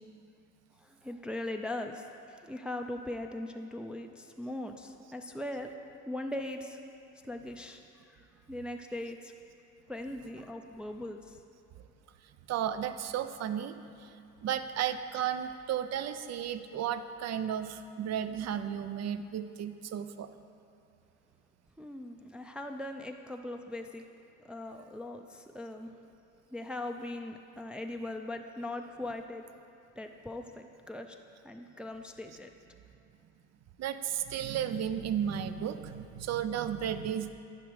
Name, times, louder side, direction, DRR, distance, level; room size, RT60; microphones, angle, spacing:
voice 1, 0.8-5.7 6.1-6.8 7.2-8.2 8.5-9.3 9.9-11.4 21.8-24.0 24.4-25.9 26.5-29.4 30.0-31.2 31.4-32.5, left 1 dB, 5° right, 4 dB, 0.4 m, -40 dB
voice 2, 12.5-20.3 33.8-37.3, right 9 dB, 60° right, 10 dB, 0.5 m, -34 dB
10.5 x 5.0 x 4.8 m, 2.6 s
cardioid pair, 90°, 30 cm